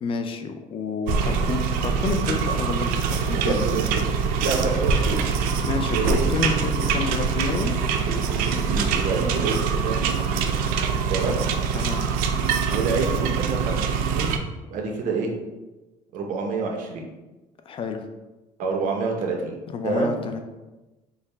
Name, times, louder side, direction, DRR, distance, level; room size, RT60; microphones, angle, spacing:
voice 1, 0.0-3.6 5.6-7.7 11.7-12.1 17.7-18.0 19.7-20.4, left 4 dB, 40° left, 6 dB, 0.4 m, -29 dB
sound 1, 1.1-14.4, right 6 dB, 90° right, 0.4 m, -24 dB
voice 2, 3.3-4.0 4.4-5.2 5.7-6.3 8.1-10.6 11.1-11.4 12.7-14.3 14.7-15.3 16.1-17.1 18.6-19.6 19.8-20.2, right 4 dB, 65° right, 1 dB, 0.8 m, -28 dB
Motorcycle, 3.6-12.2, left 2 dB, 55° left, 1.1 m, -42 dB
4.6 x 2.1 x 3.3 m, 1.1 s
cardioid pair, 135°, 14 cm